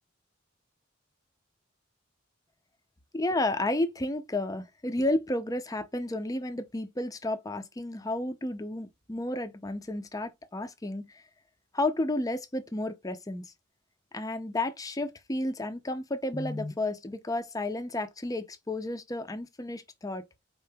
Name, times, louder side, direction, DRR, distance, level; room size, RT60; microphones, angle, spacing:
voice 1, 3.1-11.2 11.7-13.5 14.1-20.3, left 2 dB, 15° left, 0.5 m, -32 dB
4.3 x 2.8 x 3.4 m
head